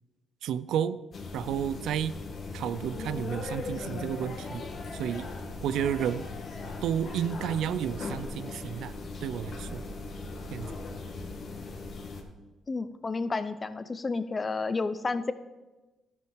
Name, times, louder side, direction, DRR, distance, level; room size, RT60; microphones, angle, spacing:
voice 1, 0.4-1.0 1.3-2.1 2.5-4.6 4.9-5.3 5.6-6.2 6.8-9.0 9.2-9.8 10.5-10.7, right 9 dB, 80° right, 15 dB, 0.4 m, -31 dB
sound 1, 1.1-12.2, left 3 dB, 50° left, 1.5 m, -38 dB
voice 2, 12.7-15.3, left 3 dB, 30° left, 13 dB, 0.6 m, -31 dB
12.5 x 6.3 x 4.9 m, 1.1 s
cardioid pair, 90°, 0 cm